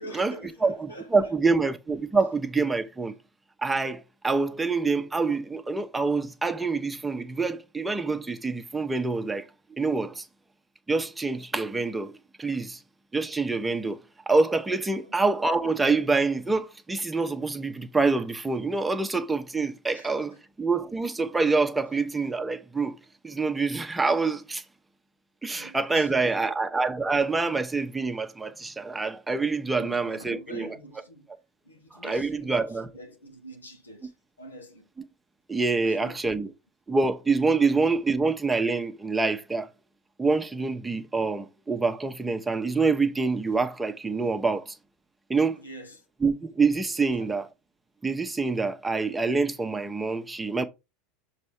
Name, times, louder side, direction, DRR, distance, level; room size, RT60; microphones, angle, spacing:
voice 1, 0.0-1.3 15.0-15.1 19.9-20.1 25.5-26.6 29.7-31.3 31.6-34.9 35.8-36.3 45.5-46.0 47.0-47.3, equal, 85° left, 1.4 m, -46 dB
voice 2, 0.6-3.2 3.6-10.3 10.9-12.8 13.1-23.0 23.2-24.6 25.4-30.8 32.0-32.9 35.5-36.5 36.9-39.7 40.2-44.8 45.3-45.6 46.2-47.5 48.0-50.6, right 3 dB, 10° right, 1.0 m, -26 dB
6.6 x 3.2 x 4.8 m
figure-of-eight pair, 80°, 0 cm